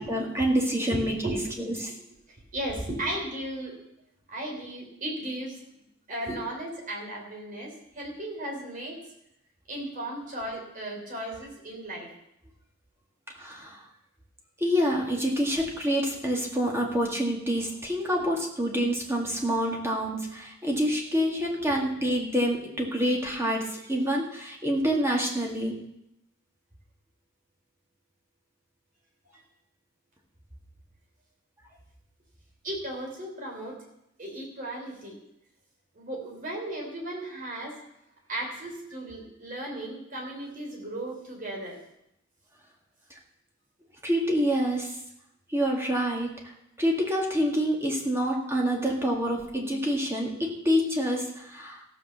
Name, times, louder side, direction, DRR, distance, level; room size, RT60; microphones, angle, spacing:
voice 1, 0.0-1.4 1.8-1.9 13.4-13.8 14.6-25.8 44.0-44.9 45.5-46.3 46.8-51.8, equal, 15° right, 0 dB, 2.1 m, -27 dB
voice 2, 0.9-1.8 2.5-3.7 4.3-5.6 6.1-9.0 9.7-12.1 18.2-18.3 32.6-33.8 34.2-35.2 36.0-37.8 38.3-41.8, right 1 dB, 40° right, -1 dB, 3.7 m, -35 dB
15.0 x 6.2 x 7.1 m, 0.82 s
head